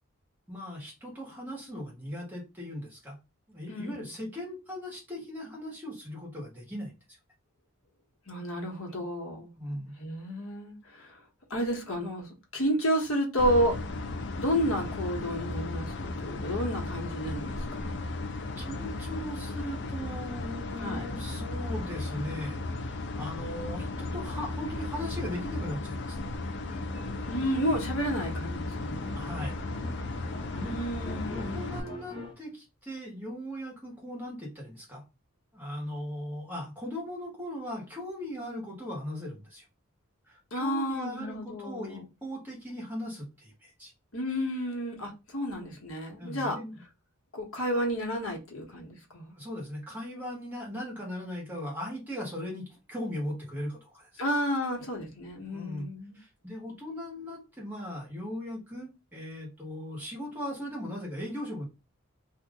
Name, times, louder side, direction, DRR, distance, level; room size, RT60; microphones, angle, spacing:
voice 1, 0.5-3.2 3.5-6.9 9.6-9.9 18.6-26.2 29.1-29.6 31.3-35.0 35.5-39.6 40.2-43.9 46.2-46.8 49.3-54.1 55.5-61.7, equal, 10° right, 1.3 m, -38 dB
voice 2, 3.7-4.1 8.3-9.5 10.0-11.2 11.5-13.8 14.3-18.0 20.8-21.0 27.3-29.1 30.5-31.7 40.5-42.0 44.1-46.6 47.3-49.3 54.2-56.2, equal, 75° left, 1.3 m, -31 dB
sound 1, 13.4-31.8, left 2 dB, 55° left, 0.5 m, -35 dB
sound 2, 26.2-32.3, left 1 dB, 20° left, 0.9 m, -45 dB
2.9 x 2.5 x 3.5 m
head